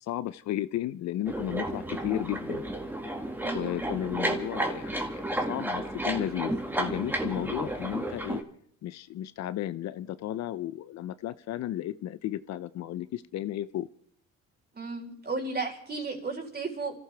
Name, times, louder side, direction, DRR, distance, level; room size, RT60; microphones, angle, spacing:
voice 1, 0.0-2.6 3.5-8.4 8.8-13.9, left 12 dB, 65° left, 15 dB, 0.7 m, -34 dB
sound 1, 1.3-8.4, right 1 dB, 5° right, 1.9 m, -32 dB
voice 2, 3.4-3.8 14.7-16.9, right 3 dB, 35° right, 1 dB, 4.4 m, -34 dB
28.5 x 14.5 x 3.5 m, 0.63 s
cardioid pair, 95°, 29 cm